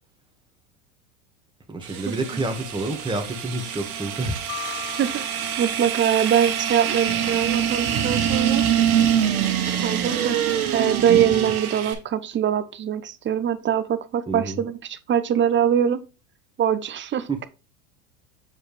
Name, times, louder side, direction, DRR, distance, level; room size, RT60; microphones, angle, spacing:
voice 1, 1.7-4.4 14.3-14.6 17.3-17.4, right 2 dB, 10° right, 1.8 m, -28 dB
sound 1, 1.8-11.9, right 9 dB, 80° right, 1.6 m, -25 dB
sound 2, 4.5-6.6, left 14 dB, 75° left, 1.2 m, -39 dB
voice 2, 5.6-8.6 9.8-10.4 10.7-16.0 16.6-17.5, right 9 dB, 25° right, 0.8 m, -23 dB
7.4 x 4.9 x 3.3 m
hypercardioid pair, 100°, 42 cm